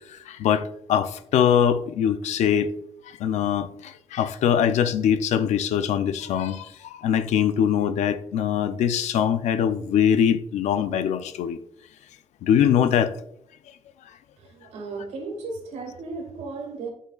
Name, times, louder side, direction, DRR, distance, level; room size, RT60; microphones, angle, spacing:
voice 1, 0.3-2.7 3.2-11.6 12.4-13.1, left 9 dB, 90° left, 0.6 m, -22 dB
voice 2, 14.4-16.9, right 3 dB, 85° right, 2.2 m, -35 dB
12.5 x 5.6 x 2.4 m
cardioid pair, 175°, 11 cm